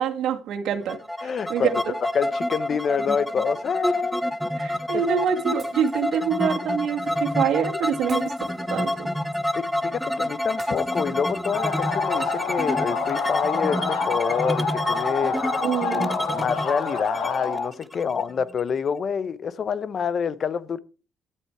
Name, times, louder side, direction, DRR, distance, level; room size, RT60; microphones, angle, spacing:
voice 1, 0.0-1.9 4.6-8.2 8.7-9.1 15.6-16.1, right 8 dB, 70° right, 1.9 m, -26 dB
sound 1, 0.9-18.6, left 1 dB, ahead, 0.8 m, -28 dB
voice 2, 1.2-1.8 2.1-4.3 4.9-5.0 9.5-15.4 16.3-20.8, left 6 dB, 40° left, 0.7 m, -27 dB
Shatter, 5.6-6.5 8.1-9.2 10.6-11.6, right 5 dB, 30° right, 3.5 m, -48 dB
sound 2, 11.5-17.7, left 5 dB, 75° left, 2.0 m, -27 dB
12.0 x 8.1 x 4.5 m
cardioid pair, 130°, 0 cm